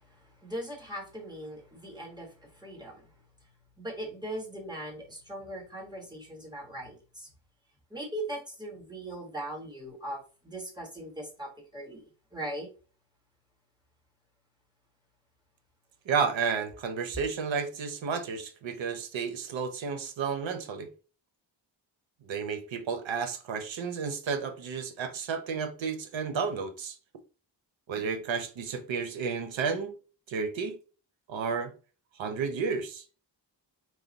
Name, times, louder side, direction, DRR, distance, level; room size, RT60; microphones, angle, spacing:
voice 1, 0.0-3.0 3.8-7.3 7.9-12.0 12.3-12.7, right 1 dB, 10° right, 1.3 m, -40 dB
voice 2, 16.1-20.9 22.3-26.9 27.9-29.9 30.3-30.7 31.3-31.7 32.2-33.0, right 5 dB, 90° right, 0.8 m, -32 dB
4.8 x 2.2 x 3.9 m
wide cardioid pair, 135°, 44 cm